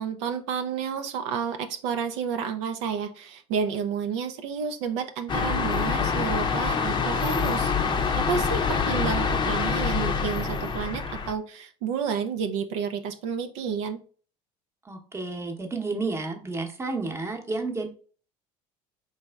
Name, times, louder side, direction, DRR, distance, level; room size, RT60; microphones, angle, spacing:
voice 1, 0.0-7.7 8.2-14.0, right 6 dB, 80° right, 7 dB, 0.4 m, -30 dB
sound 1, 5.3-11.3, left 5 dB, 30° left, 0.5 m, -26 dB
voice 2, 14.8-17.9, right 3 dB, 20° right, 4 dB, 0.8 m, -31 dB
4.0 x 3.2 x 2.3 m, 0.41 s
supercardioid pair, 90°, 14 cm